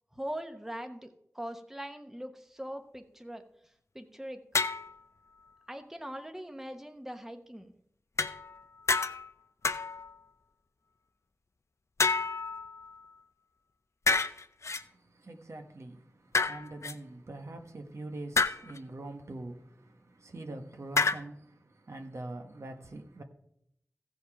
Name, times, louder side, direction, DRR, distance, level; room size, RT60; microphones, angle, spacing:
voice 1, 0.1-3.4 3.9-4.4 5.7-7.7, equal, 5° right, 1.0 m, -41 dB
sound 1, 4.5-5.0 8.2-8.6 8.9-9.3 9.6-10.1 12.0-13.1 14.1-14.8 16.3-16.9 18.4-18.8 21.0-21.2, left 4 dB, 65° left, 0.5 m, -29 dB
voice 2, 14.8-23.2, right 2 dB, 65° right, 1.1 m, -44 dB
15.0 x 5.4 x 4.8 m
wide cardioid pair, 65°, 5 cm